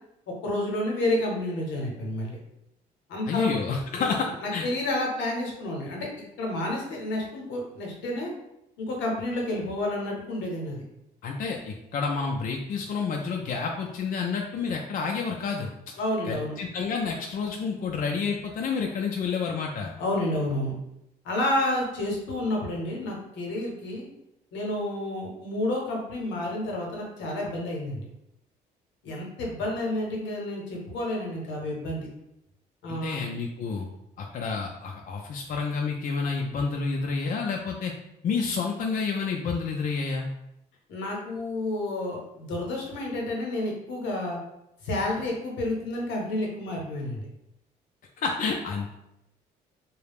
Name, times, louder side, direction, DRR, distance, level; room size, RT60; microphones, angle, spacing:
voice 1, 0.4-2.4 3.1-3.6 3.9-4.1 4.4-6.1 6.4-8.3 8.8-10.8 16.0-16.5 20.0-20.7 21.2-24.1 24.5-28.1 29.0-32.1 32.8-33.2 40.9-44.4 44.8-47.3, left 1 dB, 75° left, -1 dB, 0.8 m, -30 dB
voice 2, 3.3-4.7 11.2-15.7 16.3-19.9 32.9-33.9 34.2-37.9 38.2-40.3 48.2-49.0, left 5 dB, 45° left, 0 dB, 0.4 m, -29 dB
2.3 x 2.0 x 3.3 m, 0.83 s
supercardioid pair, 55°, 19 cm